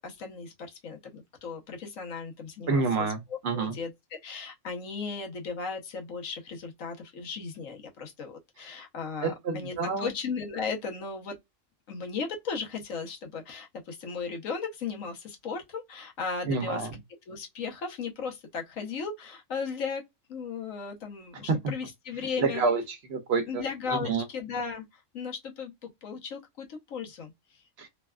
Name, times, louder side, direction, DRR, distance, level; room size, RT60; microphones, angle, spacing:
voice 1, 0.0-3.1 3.5-3.9 4.2-11.4 11.9-16.9 17.3-20.0 20.3-22.6 23.5-27.6, left 5 dB, 90° left, 1.3 m, -36 dB
voice 2, 2.7-3.7 9.2-10.1 16.4-16.9 21.5-21.7 22.4-22.8 23.1-23.6 23.9-24.2 27.8-27.9, right 4 dB, 60° right, 0.9 m, -28 dB
3.2 x 2.3 x 2.3 m
omnidirectional pair, 1.3 m